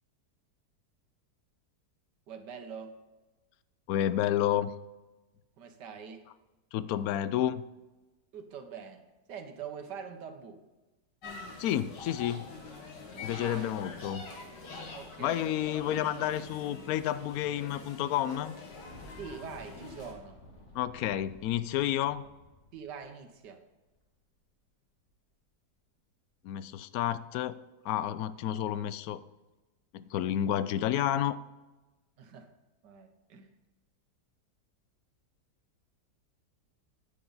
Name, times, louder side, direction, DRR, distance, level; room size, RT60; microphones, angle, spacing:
voice 1, 2.3-3.0 5.6-6.2 8.3-10.6 13.4-13.7 14.9-15.6 19.2-20.4 22.7-23.6 32.2-32.5 32.8-33.5, right 6 dB, 80° right, 7 dB, 1.7 m, -44 dB
voice 2, 3.9-4.7 6.7-7.6 11.6-12.5 13.2-14.3 15.2-18.6 20.7-22.2 26.4-27.6 27.8-29.2 29.9-31.4, left 11 dB, 70° left, 15 dB, 0.9 m, -30 dB
sound 1, 11.2-20.1, left 3 dB, 85° left, 2.4 m, -45 dB
Boom, 18.9-23.6 23.9-24.0 25.1-25.2, left 1 dB, 45° left, 2.0 m, -54 dB
10.0 x 9.2 x 4.0 m, 1.1 s
omnidirectional pair, 1.8 m